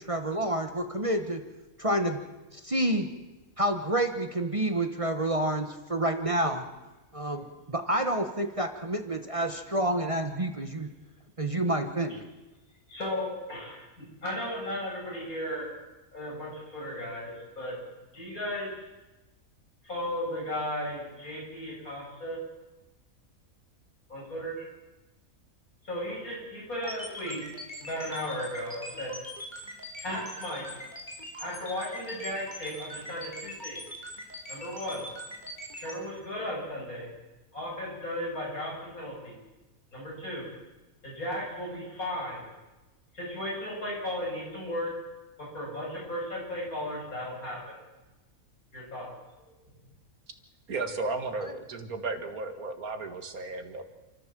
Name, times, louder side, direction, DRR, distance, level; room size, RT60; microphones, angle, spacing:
voice 1, 0.0-1.4 1.8-2.2 2.5-3.1 3.6-6.6 7.1-10.9 11.4-12.2, right 1 dB, 25° right, 6 dB, 1.3 m, -28 dB
voice 2, 12.9-15.7 16.1-17.8 18.1-18.8 19.8-22.4 24.1-24.5 25.9-27.4 27.8-29.1 30.0-30.7 31.4-33.8 34.5-35.0 35.8-37.1 37.5-39.4 39.9-40.5 41.0-42.5 43.1-44.9 45.4-47.6 48.7-49.1, left 1 dB, 80° left, -3 dB, 8.4 m, -35 dB
sound 1, 26.8-35.9, left 1 dB, 30° left, 4.2 m, -41 dB
voice 3, 50.7-53.8, right 3 dB, 80° right, 7 dB, 2.3 m, -34 dB
28.5 x 14.0 x 7.6 m, 1.1 s
omnidirectional pair, 1.5 m